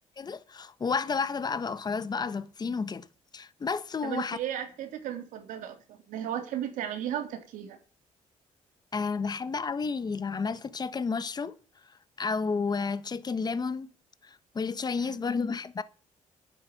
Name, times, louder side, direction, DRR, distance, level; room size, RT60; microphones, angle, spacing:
voice 1, 0.2-3.0 3.3-4.4 8.9-11.6 12.2-13.9 14.2-15.8, left 5 dB, 30° left, 1.2 m, -31 dB
voice 2, 4.0-7.8 15.0-15.2, right 10 dB, 90° right, 3.0 m, -35 dB
11.0 x 7.7 x 9.2 m
cardioid pair, 110°, 13 cm